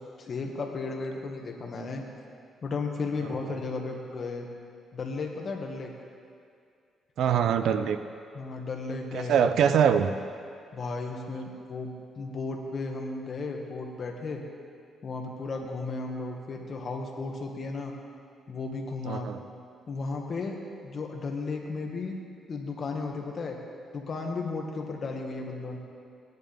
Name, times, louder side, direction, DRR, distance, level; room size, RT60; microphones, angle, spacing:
voice 1, 0.0-2.0 2.6-4.5 4.9-5.9 8.3-9.5 10.7-14.4 15.0-17.9 18.5-19.3 19.9-22.2 22.5-23.6 23.9-25.8, left 3 dB, 50° left, 1 dB, 1.9 m, -34 dB
voice 2, 7.2-8.0 9.1-10.1 19.1-19.4, right 8 dB, 75° right, 10 dB, 0.6 m, -23 dB
19.5 x 10.5 x 3.6 m, 2.3 s
cardioid pair, 90°, 0 cm